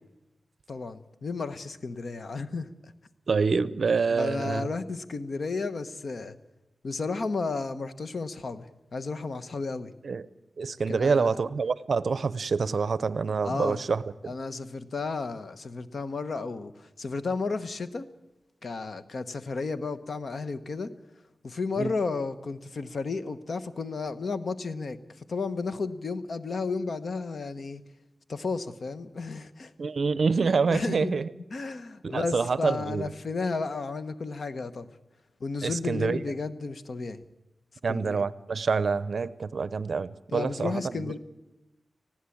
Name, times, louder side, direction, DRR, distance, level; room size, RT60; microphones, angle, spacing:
voice 1, 0.7-2.9 4.1-6.3 6.8-8.7 8.9-9.9 10.9-11.4 13.4-13.8 14.3-18.1 18.6-20.9 21.4-27.8 28.3-29.7 30.7-31.2 31.5-34.9 35.4-37.2 37.9-38.2 40.3-41.2, left 4 dB, 55° left, 11 dB, 1.0 m, -33 dB
voice 2, 3.3-4.7 10.0-10.2 10.6-14.0 21.8-21.9 29.8-31.3 32.0-33.1 35.6-36.2 37.8-41.1, right 5 dB, 60° right, 16 dB, 0.7 m, -26 dB
19.5 x 15.5 x 8.6 m, 1.0 s
wide cardioid pair, 100°, 0 cm